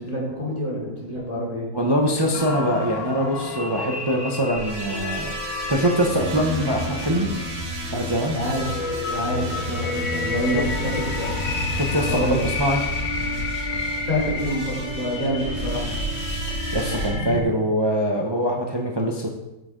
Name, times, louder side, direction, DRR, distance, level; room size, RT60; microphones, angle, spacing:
voice 1, 0.0-1.7 8.3-8.7 9.0-11.3 12.1-12.4 14.0-15.9, equal, 20° left, -6 dB, 3.3 m, -27 dB
voice 2, 1.7-7.3 7.9-8.4 10.5-10.6 11.7-12.8 16.7-19.3, equal, 40° right, 0 dB, 0.3 m, -23 dB
sound 1, 2.3-17.4, left 4 dB, 55° left, 1.1 m, -31 dB
sound 2, 4.5-17.1, right 1 dB, 85° right, 2.4 m, -31 dB
8.2 x 7.5 x 3.7 m, 0.98 s
omnidirectional pair, 1.8 m